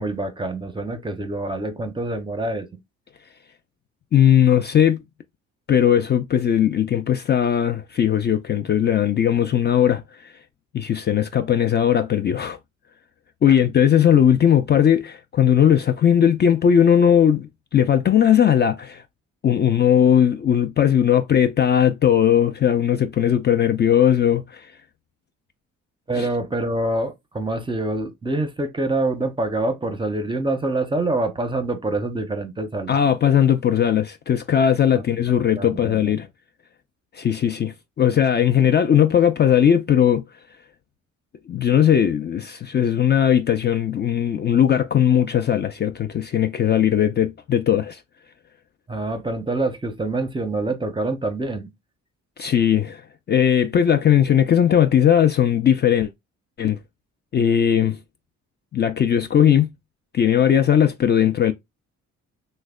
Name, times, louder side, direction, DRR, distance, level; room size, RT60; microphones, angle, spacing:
voice 1, 0.0-2.8 13.5-13.6 26.1-33.0 34.9-35.0 35.5-36.1 48.9-51.7, right 2 dB, 15° right, 0.6 m, -26 dB
voice 2, 4.1-5.1 5.7-10.3 10.7-12.6 13.4-19.0 19.4-24.7 26.2-26.3 32.9-36.3 37.1-40.2 41.5-48.0 52.4-53.0 53.3-56.1 56.6-56.8 57.3-58.0 58.7-59.7 60.1-61.5, left 9 dB, 35° left, 0.4 m, -18 dB
3.1 x 2.1 x 3.5 m
cardioid pair, 90°, 30 cm